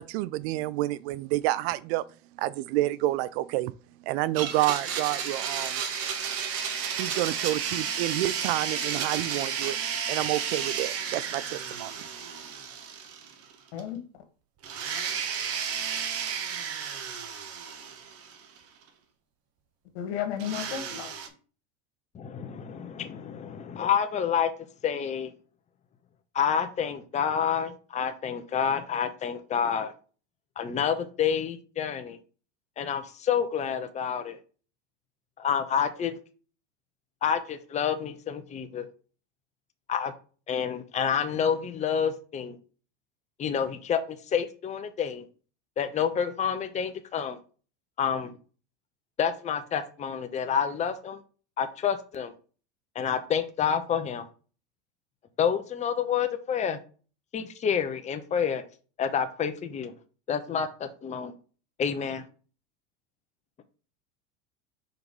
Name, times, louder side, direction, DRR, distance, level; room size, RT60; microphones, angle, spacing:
voice 1, 0.0-2.0 2.4-3.7 4.0-5.8 7.0-9.8 10.1-12.1, right 16 dB, 65° right, 0.5 m, -29 dB
Domestic sounds home sounds, 4.3-13.5 13.8-13.9 14.6-18.6 20.4-21.3, right 7 dB, 45° right, 1.2 m, -32 dB
voice 2, 19.9-21.1, left 9 dB, 70° left, 1.7 m, -33 dB
voice 3, 22.1-24.5 24.8-25.3 26.3-29.9 30.6-32.2 32.8-34.4 35.4-36.1 37.2-38.9 39.9-40.1 40.5-42.6 43.4-45.2 45.8-47.4 48.0-48.3 49.2-51.2 51.6-52.3 52.9-54.3 55.4-56.8 57.3-58.6 59.0-59.9 60.3-61.3 61.8-62.3, left 7 dB, 20° left, 0.7 m, -28 dB
4.7 x 3.8 x 5.3 m
supercardioid pair, 110°, 35 cm